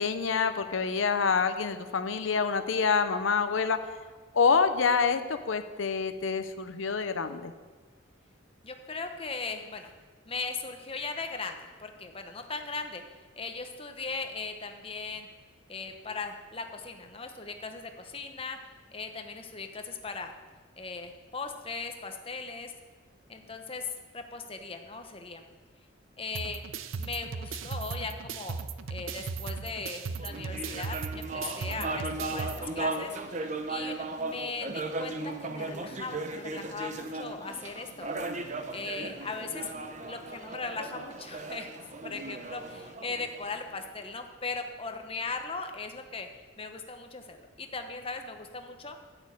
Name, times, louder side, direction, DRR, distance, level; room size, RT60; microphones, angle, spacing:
voice 1, 0.0-3.8 4.3-7.5, left 5 dB, 80° left, 9 dB, 0.7 m, -27 dB
voice 2, 8.6-9.9 10.3-13.0 13.4-15.3 15.7-18.6 18.9-20.3 20.8-22.7 23.3-25.4 26.2-26.6 27.0-28.6 28.9-38.3 38.7-39.7 40.1-41.7 42.0-46.3 46.6-49.0, left 4 dB, 30° left, 6 dB, 1.0 m, -38 dB
sound 1, 26.3-32.6, right 5 dB, 85° right, 0.6 m, -37 dB
sound 2, 30.2-43.9, right 2 dB, 35° right, 0.8 m, -37 dB
10.5 x 7.1 x 8.4 m, 1.4 s
head